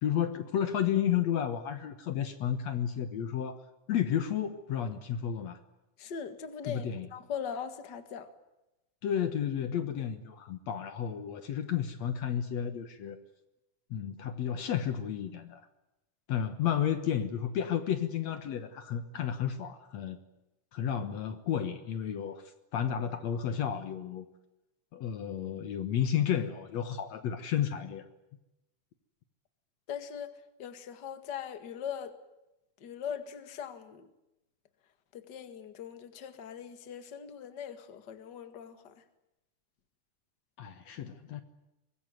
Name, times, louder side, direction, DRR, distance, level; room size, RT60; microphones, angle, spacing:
voice 1, 0.0-5.6 6.6-7.1 9.0-13.2 13.9-15.6 16.3-20.2 20.7-22.4 22.7-24.3 24.9-28.1 40.6-41.4, left 9 dB, 65° left, 10 dB, 2.4 m, -32 dB
voice 2, 6.0-6.9 7.1-8.3 29.9-30.3 30.6-32.1 32.8-34.1 35.1-38.9, left 8 dB, 40° left, 10 dB, 2.1 m, -40 dB
24.5 x 21.0 x 9.4 m, 0.93 s
omnidirectional pair, 3.5 m